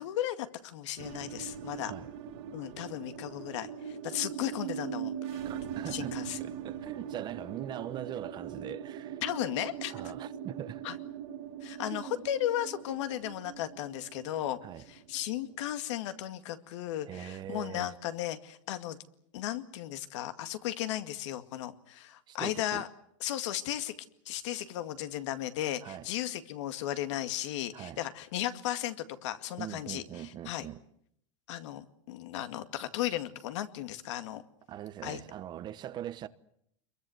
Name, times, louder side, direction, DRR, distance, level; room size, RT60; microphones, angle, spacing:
voice 1, 0.0-1.9 2.5-5.4 5.9-6.4 9.2-9.9 10.8-11.0 11.6-14.6 14.9-19.0 19.3-22.9 23.2-23.9 24.3-30.7 31.5-34.4 35.0-35.2, left 13 dB, 65° left, 2.1 m, -35 dB
sound 1, 1.0-15.7, right 8 dB, 60° right, 2.0 m, -41 dB
voice 2, 5.4-9.2 9.9-10.8 11.9-12.3 14.6-14.9 17.1-18.0 22.3-22.9 25.8-26.1 27.7-28.0 29.6-30.8 34.7-36.3, right 11 dB, 25° right, 1.0 m, -41 dB
26.0 x 22.5 x 7.9 m
supercardioid pair, 150°, 17 cm